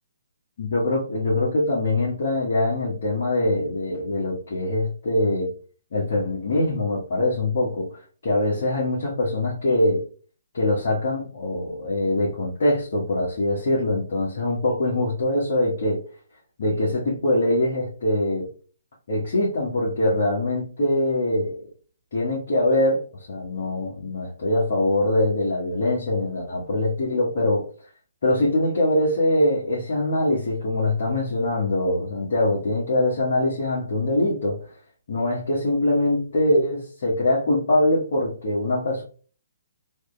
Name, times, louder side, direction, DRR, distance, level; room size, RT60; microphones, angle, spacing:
voice 1, 0.6-5.5 5.9-10.0 10.5-16.0 16.6-18.5 19.1-21.6 22.1-23.0 23.3-27.6 28.2-34.6 35.1-39.0, left 1 dB, 60° left, 1.4 m, -23 dB
3.3 x 2.8 x 2.2 m
figure-of-eight pair, 135°, 0 cm